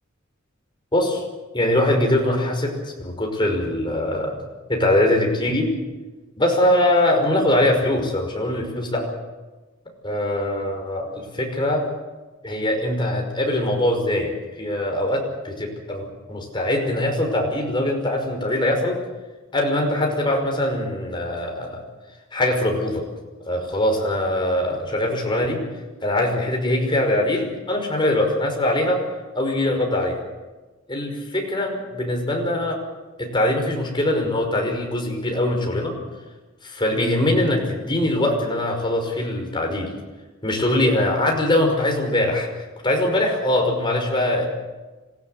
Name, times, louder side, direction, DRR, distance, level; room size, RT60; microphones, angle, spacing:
voice 1, 0.9-1.2 1.5-4.4 4.7-5.7 6.4-9.1 10.0-11.8 12.4-14.3 14.6-19.0 19.5-21.8 22.3-23.1 23.4-25.6 26.0-29.0 29.3-30.2 30.9-32.8 33.2-35.9 36.6-39.9 40.4-42.5 42.8-44.5, left 1 dB, 25° left, 1 dB, 5.5 m, -22 dB
26.5 x 16.5 x 8.2 m, 1.2 s
head